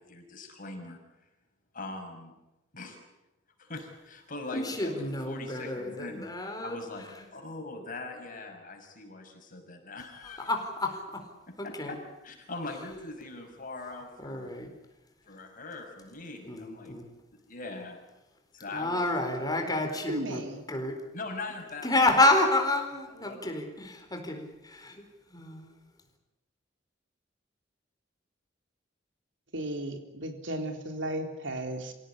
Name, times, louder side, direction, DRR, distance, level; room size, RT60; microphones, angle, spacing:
voice 1, 0.1-1.0 1.7-2.3 2.7-3.0 3.6-7.1 7.3-10.5 11.6-12.0 12.2-14.5 15.3-17.0 17.3-18.0 18.5-19.5 21.1-22.1 23.1-23.5, left 2 dB, 45° left, 3 dB, 5.9 m, -41 dB
voice 2, 4.5-6.8 10.5-11.2 11.8-11.9 14.2-14.7 16.4-17.0 18.7-20.4 20.7-21.0 21.8-25.0 25.3-25.7, left 2 dB, 20° left, 4 dB, 4.3 m, -29 dB
voice 3, 20.1-20.6 29.5-31.9, right 1 dB, 80° right, 6 dB, 3.6 m, -35 dB
27.0 x 17.0 x 10.0 m, 0.97 s
head